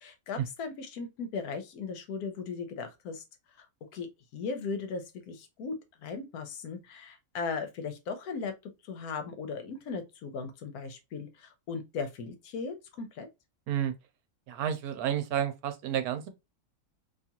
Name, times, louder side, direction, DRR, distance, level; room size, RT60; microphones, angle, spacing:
voice 1, 0.0-3.2 3.6-3.7 3.9-4.1 4.3-5.7 6.0-8.5 8.8-13.3, left 4 dB, 80° left, 1.2 m, -37 dB
voice 2, 14.5-16.3, right 10 dB, 80° right, 1.1 m, -30 dB
2.8 x 2.4 x 2.8 m
omnidirectional pair, 1.6 m